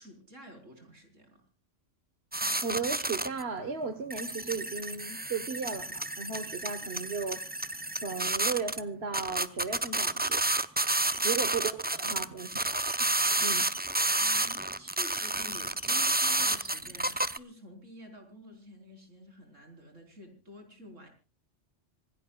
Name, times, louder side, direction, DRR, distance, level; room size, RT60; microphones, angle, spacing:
voice 1, 0.0-1.4 11.1-11.4 11.9-12.1 14.2-21.1, equal, 80° right, 5 dB, 4.7 m, -50 dB
sound 1, 2.3-3.4 3.8-3.9 4.1-8.8 9.1-17.4, right 2 dB, 10° right, 0.4 m, -30 dB
voice 2, 2.6-7.4 8.0-10.4 11.2-12.8 13.4-13.7, right 5 dB, 55° right, 10 dB, 1.5 m, -35 dB
26.0 x 17.0 x 2.3 m, 0.33 s
omnidirectional pair, 1.3 m